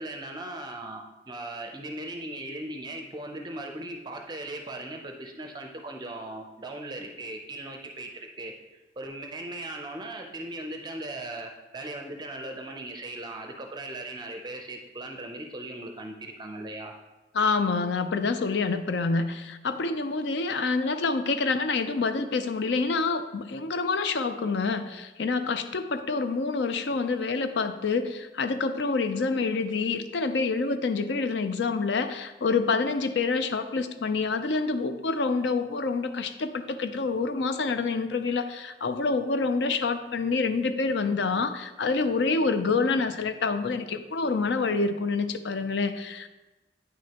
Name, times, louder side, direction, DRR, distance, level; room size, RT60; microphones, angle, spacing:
voice 1, 0.0-16.9 20.5-20.6 26.9-27.0, right 1 dB, 25° right, 3 dB, 0.5 m, -38 dB
voice 2, 17.3-46.3, left 4 dB, 75° left, 9 dB, 0.5 m, -27 dB
8.9 x 6.3 x 2.9 m, 1.1 s
head